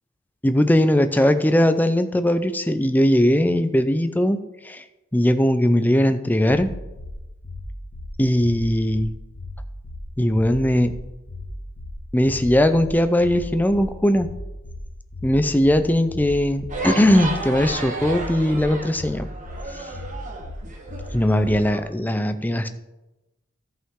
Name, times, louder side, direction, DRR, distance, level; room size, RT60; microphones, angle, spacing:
voice 1, 0.4-4.4 4.6-4.8 5.1-6.7 8.2-9.1 10.2-10.9 12.1-14.3 15.2-19.3 21.1-22.7, left 1 dB, 10° left, 9 dB, 0.5 m, -19 dB
sound 1, 6.5-6.6 7.0-7.1 7.4-7.6 7.9-8.1 8.4-8.6 8.9-9.0 9.4-9.5 9.8-10.0 10.3-10.5 10.8-11.0 11.3-11.4 11.8-11.9 12.2-12.4 12.7-12.9 13.2-13.4 13.7-13.8 14.2-14.3 14.6-14.8 15.1-15.3 15.6-15.8 16.1-16.2 16.6-16.7 17.0-17.2 17.5-17.7 18.0-18.2 18.5-18.6 19.0-19.1 19.4-19.6 19.9-20.1 20.4-20.6 20.9-21.0 21.4-21.5, left 3 dB, 75° left, 1.6 m, -36 dB
sound 2, 16.7-21.8, right 2 dB, 40° right, 1.3 m, -33 dB
14.0 x 5.7 x 3.7 m, 1.0 s
head